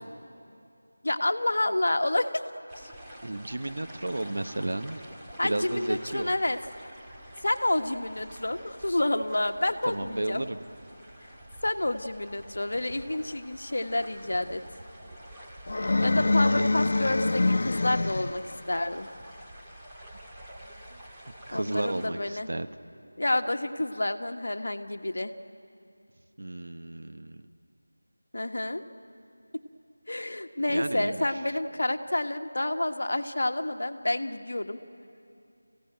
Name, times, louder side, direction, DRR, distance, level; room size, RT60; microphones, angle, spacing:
voice 1, 1.0-2.4 2.8-2.9 5.4-6.6 7.4-10.4 11.6-14.6 16.0-18.4 18.7-19.1 21.5-22.5 23.2-25.3 28.3-28.8 30.1-34.8, left 1 dB, 65° left, 7 dB, 1.3 m, -29 dB
sound 1, 2.7-22.1, right 1 dB, 5° right, 1.9 m, -48 dB
voice 2, 3.2-5.0 5.4-6.3 9.9-10.6 15.8-16.3 16.6-17.1 20.9-21.0 21.5-22.7 26.4-27.5 30.7-31.6, right 2 dB, 65° right, 9 dB, 1.1 m, -33 dB
sound 2, 15.7-18.6, left 2 dB, 50° left, 0.4 m, -25 dB
27.0 x 16.0 x 9.2 m, 2.6 s
figure-of-eight pair, 170°, 0 cm